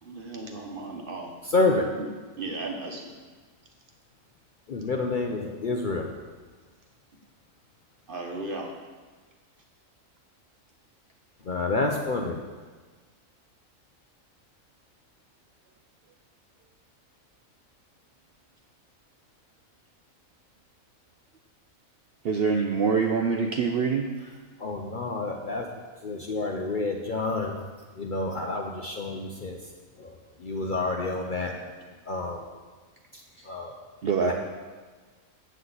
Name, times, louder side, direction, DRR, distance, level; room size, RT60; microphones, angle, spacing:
voice 1, 0.0-1.3 2.0-2.1 2.4-3.1 8.1-8.7, right 2 dB, 45° right, 1 dB, 1.1 m, -36 dB
voice 2, 1.5-1.9 4.7-6.1 11.4-12.4 24.6-25.7 26.0-27.6 28.0-29.6 30.0-31.5 32.1-32.4 33.1-33.7 34.2-34.3, left 3 dB, 50° left, 1 dB, 0.6 m, -29 dB
voice 3, 22.2-24.1 34.0-34.3, right 5 dB, 60° right, 3 dB, 0.6 m, -24 dB
8.0 x 7.7 x 3.9 m, 1.4 s
omnidirectional pair, 1.4 m